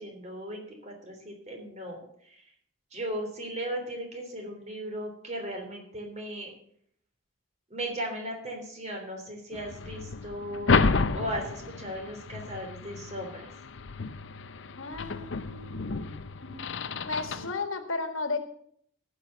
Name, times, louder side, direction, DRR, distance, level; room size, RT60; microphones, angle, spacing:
voice 1, 0.0-2.0 2.9-6.5 7.7-13.5 17.4-17.5, equal, 35° right, 3 dB, 3.2 m, -37 dB
sound 1, 9.5-17.5, left 4 dB, 65° left, 0.6 m, -31 dB
voice 2, 14.8-16.0 16.4-16.6 17.0-18.4, left 3 dB, 85° left, 8 dB, 1.6 m, -34 dB
15.0 x 6.4 x 6.8 m, 0.65 s
head